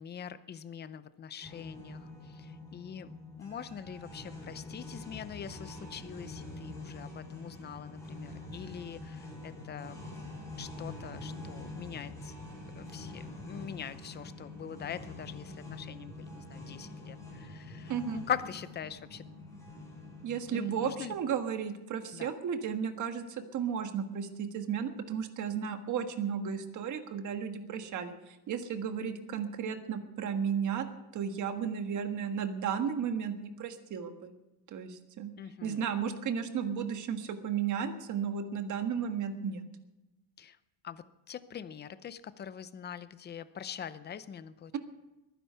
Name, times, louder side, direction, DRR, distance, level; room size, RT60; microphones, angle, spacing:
voice 1, 0.0-3.1 3.4-10.0 10.6-12.3 12.7-19.2 20.5-21.1 22.1-22.3 35.4-35.8 40.4-40.6 40.8-44.8, left 8 dB, 25° left, 14 dB, 0.6 m, -43 dB
sound 1, 1.4-21.2, left 2 dB, 5° left, 6.6 m, -45 dB
voice 2, 17.9-18.2 20.2-30.8 31.1-34.3 34.7-35.3 35.6-39.6, right 7 dB, 45° right, 7 dB, 1.5 m, -34 dB
21.5 x 10.0 x 5.6 m, 1.1 s
cardioid pair, 160°, 42 cm